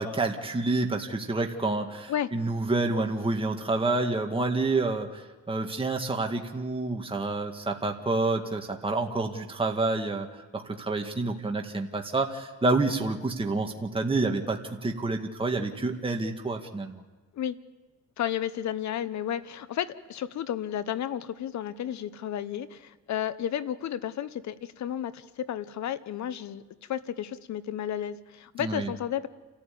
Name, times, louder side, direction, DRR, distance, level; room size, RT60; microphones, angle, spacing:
voice 1, 0.0-10.3 10.5-17.0 28.6-28.9, right 3 dB, 20° right, 3 dB, 2.0 m, -28 dB
voice 2, 18.2-26.6 26.9-29.3, left 10 dB, 65° left, 15 dB, 1.1 m, -32 dB
29.0 x 14.0 x 8.6 m, 1.3 s
cardioid pair, 90°, 30 cm